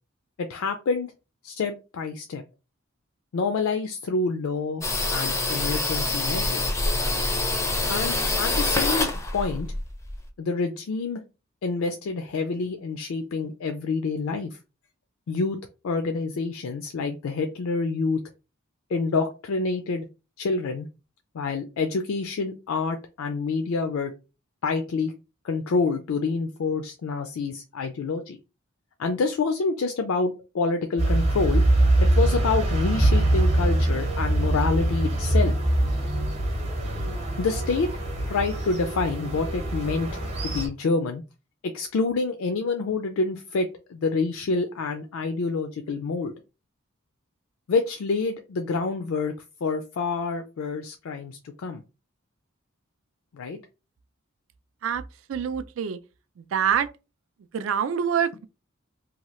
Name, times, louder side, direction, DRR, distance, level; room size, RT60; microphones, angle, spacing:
voice 1, 0.4-1.1 1.4-2.4 3.3-4.8 5.1-6.8 7.9-9.7 10.4-11.2 11.6-14.6 15.3-15.6 15.8-18.2 18.9-20.1 20.4-20.9 21.3-24.1 24.6-25.1 25.4-28.4 29.0-31.6 32.2-35.5 37.4-37.9 38.3-40.1 40.4-41.2 41.7-46.3 47.7-49.3 49.6-51.8 53.3-53.6, left 4 dB, 80° left, 0.4 m, -27 dB
sound 1, 4.8-10.3, left 2 dB, 15° left, 0.4 m, -26 dB
sound 2, 31.0-40.7, right 1 dB, 30° right, 0.8 m, -23 dB
voice 2, 55.3-56.0 56.4-56.9 57.5-58.5, right 8 dB, 70° right, 0.3 m, -25 dB
2.8 x 2.3 x 3.0 m
head